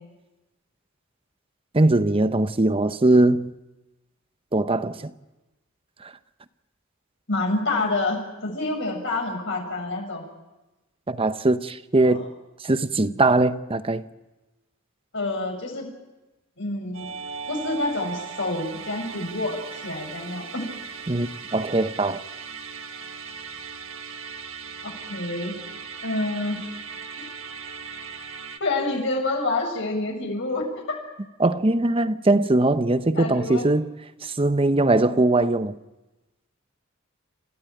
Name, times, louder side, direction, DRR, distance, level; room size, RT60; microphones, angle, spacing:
voice 1, 1.7-3.5 4.5-5.1 6.0-6.1 11.1-12.2 12.6-14.0 21.1-22.2 31.4-33.9 34.2-35.7, right 2 dB, 25° right, 0.8 m, -21 dB
voice 2, 7.3-10.3 12.0-12.3 15.1-15.9 16.6-17.1 17.5-20.7 24.8-25.5 26.0-26.7 27.2-27.3 28.6-31.0 33.2-33.6, left 2 dB, 65° left, 7.0 m, -28 dB
Musical instrument, 16.9-28.6, right 6 dB, 70° right, 1.7 m, -38 dB
29.0 x 15.5 x 9.1 m
head